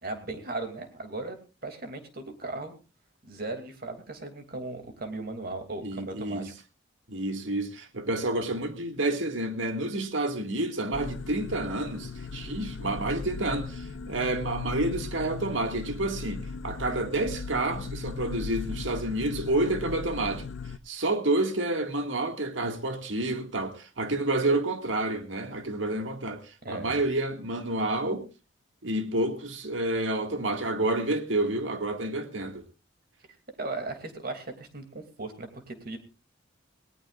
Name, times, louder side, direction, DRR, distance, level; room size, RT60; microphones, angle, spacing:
voice 1, 0.0-2.7 3.2-6.5 26.6-27.0 33.6-36.0, right 2 dB, 55° right, 2.7 m, -37 dB
voice 2, 5.8-6.5 7.1-20.4 20.9-28.3 28.8-32.6, right 2 dB, 85° right, 2.0 m, -29 dB
sound 1, 10.9-20.8, left 4 dB, 80° left, 0.6 m, -38 dB
19.0 x 18.5 x 2.5 m
head